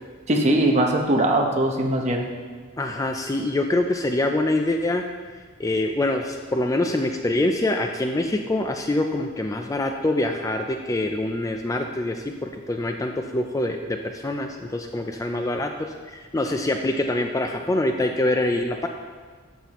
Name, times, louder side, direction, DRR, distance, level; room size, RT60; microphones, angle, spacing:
voice 1, 0.3-2.3, right 1 dB, 35° right, 1 dB, 1.0 m, -20 dB
voice 2, 2.8-5.0 5.6-15.7 16.1-18.9, left 1 dB, 15° left, 4 dB, 0.4 m, -25 dB
12.5 x 7.4 x 3.0 m, 1.6 s
head